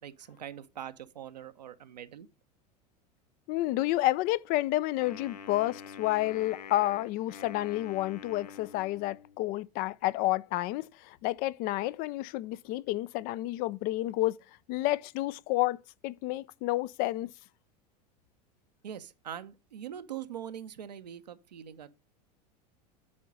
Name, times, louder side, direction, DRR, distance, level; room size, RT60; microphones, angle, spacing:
voice 1, 0.0-2.3 18.8-21.9, right 10 dB, 85° right, 0.8 m, -43 dB
voice 2, 3.5-14.4 14.7-17.3, left 17 dB, 45° left, 0.4 m, -30 dB
Wind instrument woodwind instrument, 5.0-9.4, left 6 dB, 80° left, 0.6 m, -46 dB
8.6 x 4.6 x 5.3 m
hypercardioid pair, 85°, 21 cm